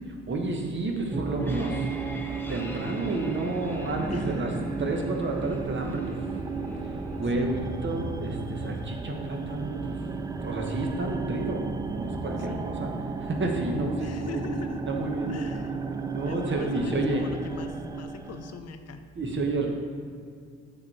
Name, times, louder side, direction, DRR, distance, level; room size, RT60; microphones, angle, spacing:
voice 1, 0.3-1.9 2.5-4.5 4.8-6.2 6.9-10.0 10.4-12.9 13.2-14.5 14.9-15.7 16.1-17.2 19.2-19.7, right 2 dB, 40° right, 2 dB, 1.1 m, -30 dB
sound 1, 1.1-12.1, left 1 dB, 5° left, 0.8 m, -44 dB
sound 2, 1.1-18.6, right 4 dB, 15° right, 0.3 m, -34 dB
voice 2, 12.4-12.7 14.0-14.9 15.3-15.7 16.2-19.0, left 6 dB, 55° left, 8 dB, 0.6 m, -42 dB
7.4 x 3.7 x 4.6 m, 2.2 s
supercardioid pair, 65°, 30 cm